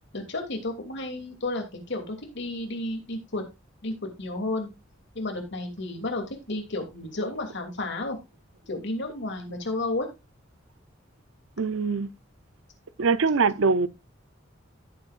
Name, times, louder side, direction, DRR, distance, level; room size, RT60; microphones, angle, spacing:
voice 1, 0.1-3.4 3.8-4.7 5.1-8.2 8.7-10.1, left 2 dB, 60° left, 2.9 m, -32 dB
voice 2, 11.6-12.1 13.0-13.9, right 4 dB, 85° right, 0.7 m, -23 dB
14.0 x 7.6 x 2.5 m
head